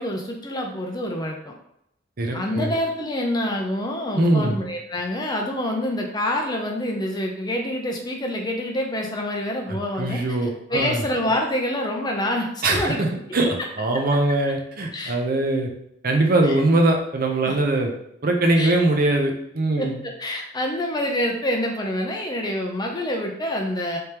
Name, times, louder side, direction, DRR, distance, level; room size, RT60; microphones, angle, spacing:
voice 1, 0.0-1.5 2.3-10.2 10.7-13.0 14.9-15.2 16.4-16.6 17.5-17.6 18.6-18.7 19.8-24.0, left 1 dB, 20° left, 2 dB, 0.5 m, -26 dB
voice 2, 2.2-2.7 4.1-4.6 9.7-11.0 12.6-15.7 16.0-17.9 18.2-20.0, right 2 dB, 50° right, 2 dB, 0.6 m, -22 dB
3.3 x 3.3 x 2.9 m, 0.75 s
head